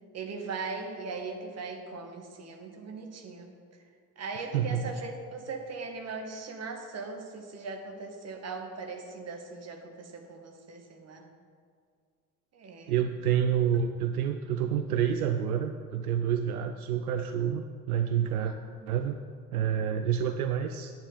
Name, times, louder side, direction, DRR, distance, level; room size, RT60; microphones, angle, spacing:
voice 1, 0.1-3.5 4.2-11.3 12.5-12.9 18.4-18.9, right 4 dB, 35° right, 3 dB, 1.4 m, -39 dB
voice 2, 4.4-4.9 12.9-18.5 18.9-19.2 19.5-20.9, right 8 dB, 75° right, 8 dB, 0.5 m, -28 dB
9.6 x 8.8 x 3.9 m, 2.1 s
figure-of-eight pair, 55°, 45 cm